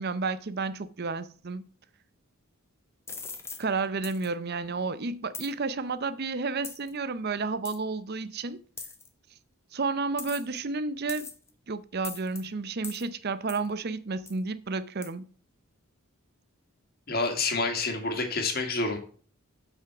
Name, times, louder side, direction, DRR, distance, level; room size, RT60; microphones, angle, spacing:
voice 1, 0.0-1.6 3.6-8.6 9.7-11.3 11.7-15.3, right 4 dB, 45° right, 0.6 m, -31 dB
sound 1, 3.1-3.6 4.0-4.3 5.3-5.5 6.6-6.9 7.6-7.8 8.8-9.1 10.2-10.6 11.1-11.5 12.0-12.4 12.8-13.0 13.5-13.7 14.3-14.4 15.0-15.1, left 4 dB, 10° left, 1.0 m, -40 dB
voice 2, 17.1-19.0, left 3 dB, 45° left, 2.0 m, -28 dB
8.0 x 5.9 x 5.9 m
head